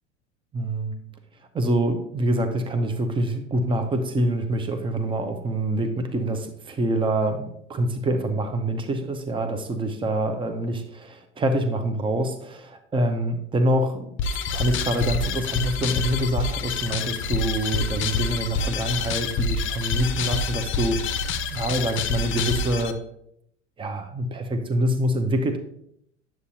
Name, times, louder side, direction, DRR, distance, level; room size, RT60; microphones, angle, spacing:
voice 1, 0.5-0.9 1.5-14.1 14.5-23.0 23.8-25.6, right 1 dB, 15° right, 7 dB, 0.8 m, -26 dB
sound 1, 14.2-22.9, left 4 dB, 35° left, 0.8 m, -27 dB
9.6 x 7.5 x 2.8 m, 0.72 s
hypercardioid pair, 90°, 36 cm